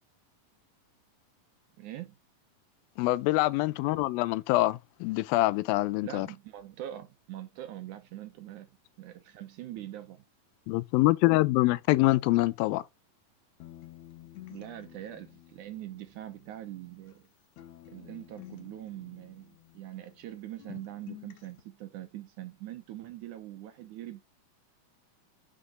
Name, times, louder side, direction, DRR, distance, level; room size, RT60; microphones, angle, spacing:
voice 1, 1.8-2.2 6.0-8.7 9.0-10.2 14.5-17.3 17.9-24.2, right 13 dB, 75° right, 1.9 m, -43 dB
voice 2, 3.0-6.3 10.7-12.8, left 19 dB, 90° left, 2.4 m, -25 dB
sound 1, 13.6-17.3 17.6-20.3 20.6-21.6, left 14 dB, 70° left, 1.9 m, -51 dB
6.6 x 5.5 x 3.7 m
omnidirectional pair, 4.1 m